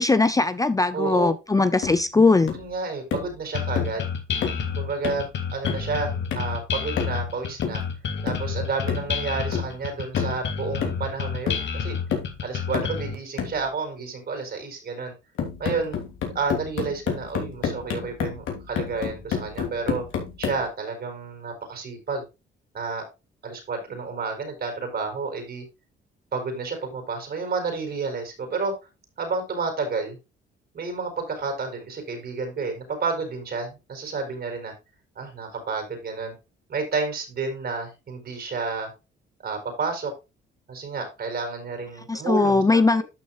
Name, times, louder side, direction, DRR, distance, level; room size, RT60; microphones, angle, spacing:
voice 1, 0.0-2.5 42.1-43.0, left 3 dB, 15° left, 0.6 m, -20 dB
voice 2, 0.9-1.3 2.5-4.1 4.8-5.3 5.5-7.8 8.2-12.0 12.4-15.1 15.6-16.0 16.3-20.0 20.4-22.2 22.7-23.0 23.4-25.6 26.3-28.7 29.2-30.2 30.7-34.7 35.2-36.4 36.7-38.9 39.4-40.1 40.7-43.0, right 4 dB, 55° right, 4.6 m, -30 dB
sound 1, 1.8-2.0 2.5-2.7 3.1-3.4 3.8-4.0 4.4-4.7 5.0-5.3 5.7-5.9 6.3-6.6 7.0-7.3 7.6-7.9 8.3-8.5 8.9-9.1 9.5-9.8 10.2-10.4 10.8-11.2 11.5-11.7 12.1-12.4 12.7-13.0 13.4-13.6 15.4-20.7, left 7 dB, 80° left, 3.1 m, -30 dB
sound 2, 3.5-13.1, left 6 dB, 65° left, 2.1 m, -29 dB
12.0 x 6.2 x 2.5 m
cardioid pair, 90°, 20 cm